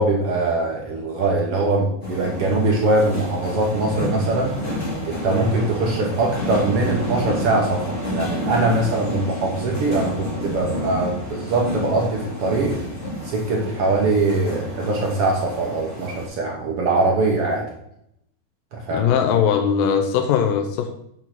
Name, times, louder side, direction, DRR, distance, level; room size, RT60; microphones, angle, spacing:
voice 1, 0.0-4.5 5.0-12.7 13.2-17.7 18.7-19.1, right 2 dB, 80° right, -1 dB, 1.3 m, -22 dB
sound 1, 2.0-16.2, left 1 dB, 20° left, 1.8 m, -29 dB
voice 2, 18.9-20.9, left 8 dB, 75° left, 5 dB, 2.2 m, -20 dB
7.2 x 5.7 x 5.9 m, 0.76 s
omnidirectional pair, 4.4 m